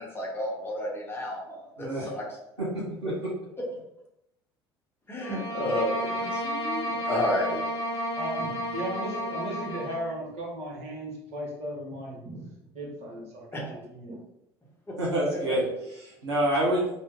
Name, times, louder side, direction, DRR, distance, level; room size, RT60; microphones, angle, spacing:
voice 1, 0.0-2.2 5.1-7.6 13.5-13.6 14.9-15.0, left 1 dB, 15° left, -3 dB, 1.0 m, -31 dB
voice 2, 1.8-2.1 2.6-3.1 15.0-16.9, right 1 dB, 80° right, -6 dB, 1.0 m, -27 dB
sound 1, 5.2-10.1, equal, 85° left, 0.5 m, -32 dB
voice 3, 8.1-12.5 12.7-14.2, right 1 dB, 50° right, -2 dB, 1.1 m, -36 dB
2.8 x 2.1 x 3.5 m, 0.83 s
figure-of-eight pair, 60°, 14 cm